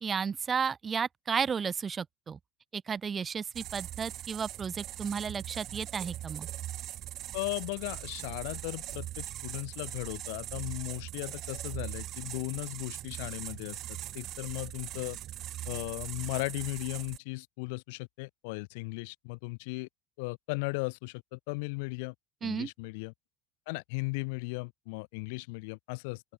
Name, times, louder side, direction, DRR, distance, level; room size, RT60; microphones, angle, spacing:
voice 1, 0.0-2.4 2.7-6.5 22.4-22.7, right 6 dB, 20° right, 1.2 m, -33 dB
sound 1, 3.5-17.2, right 13 dB, 40° right, 7.0 m, -41 dB
voice 2, 7.3-15.2 15.7-19.9 20.2-22.1 22.4-23.1 23.7-26.2, left 29 dB, 80° left, 3.2 m, -37 dB
open air
cardioid pair, 160°, 0 cm